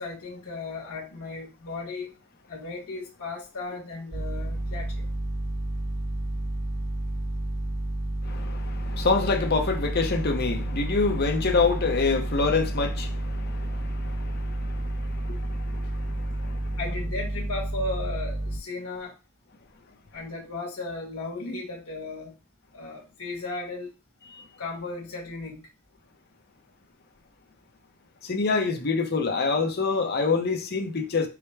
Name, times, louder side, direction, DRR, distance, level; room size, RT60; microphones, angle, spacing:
voice 1, 0.0-2.1 2.5-5.0 16.8-19.1 20.1-22.3 22.7-23.9 24.6-25.7, left 3 dB, 80° left, 1.4 m, -35 dB
sound 1, 4.1-18.6, right 1 dB, 80° right, 2.7 m, -30 dB
voice 2, 8.2-16.8 28.2-31.3, left 4 dB, 45° left, 0.7 m, -27 dB
5.0 x 2.1 x 4.5 m
head